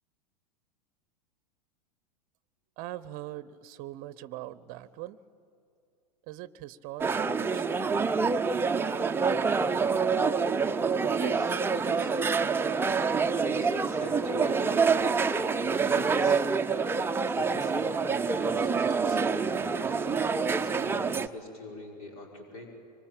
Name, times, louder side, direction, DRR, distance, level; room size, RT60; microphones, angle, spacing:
voice 1, 2.8-5.2 6.3-7.8, right 14 dB, 40° right, 18 dB, 0.8 m, -42 dB
sound 1, 7.0-21.3, right 5 dB, 10° right, 0.7 m, -27 dB
voice 2, 11.2-12.1 13.4-16.4 17.3-22.7, left 1 dB, 60° left, 0 dB, 5.6 m, -43 dB
25.0 x 24.5 x 9.1 m, 2.5 s
hypercardioid pair, 95°, 21 cm